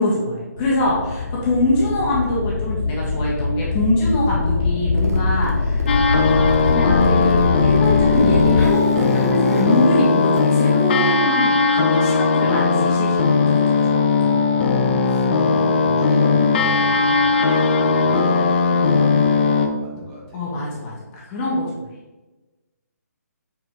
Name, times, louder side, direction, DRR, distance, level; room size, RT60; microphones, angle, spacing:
voice 1, 0.0-5.9 6.6-14.5 20.3-21.7, left 1 dB, 15° left, -5 dB, 1.2 m, -23 dB
sound 1, 0.6-8.7, left 4 dB, 85° left, 0.5 m, -22 dB
Zipper (clothing), 5.0-6.0 6.3-11.0, right 1 dB, 60° right, 1.4 m, -30 dB
sound 2, 5.9-19.7, left 4 dB, 35° left, 0.7 m, -18 dB
voice 2, 15.1-20.5, right 1 dB, 20° right, -3 dB, 1.4 m, -37 dB
7.7 x 4.5 x 3.6 m, 1.2 s
hypercardioid pair, 165°, 9 cm